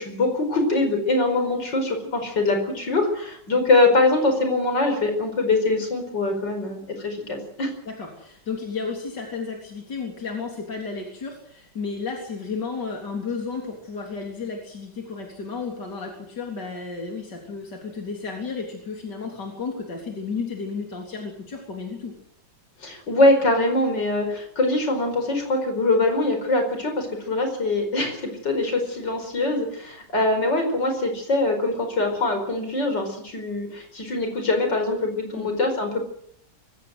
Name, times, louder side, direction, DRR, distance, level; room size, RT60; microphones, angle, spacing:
voice 1, 0.0-7.7 22.8-36.0, left 2 dB, 90° left, 5 dB, 5.6 m, -23 dB
voice 2, 7.9-22.1 35.3-35.5, left 4 dB, 75° left, 1 dB, 4.3 m, -33 dB
23.5 x 16.5 x 7.9 m, 0.67 s
omnidirectional pair, 1.9 m